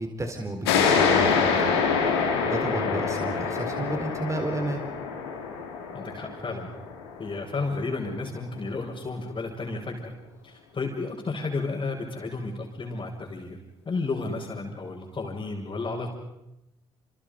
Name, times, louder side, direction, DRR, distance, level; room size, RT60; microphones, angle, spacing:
voice 1, 0.0-1.7 2.4-4.8, right 2 dB, 25° right, 4 dB, 4.3 m, -32 dB
sound 1, 0.6-7.8, left 5 dB, 85° left, 3.6 m, -26 dB
voice 2, 5.9-6.7 7.2-10.1 10.4-13.6 13.8-16.1, left 3 dB, 40° left, -4 dB, 6.1 m, -32 dB
29.0 x 29.0 x 5.4 m, 0.89 s
hypercardioid pair, 45°, 13 cm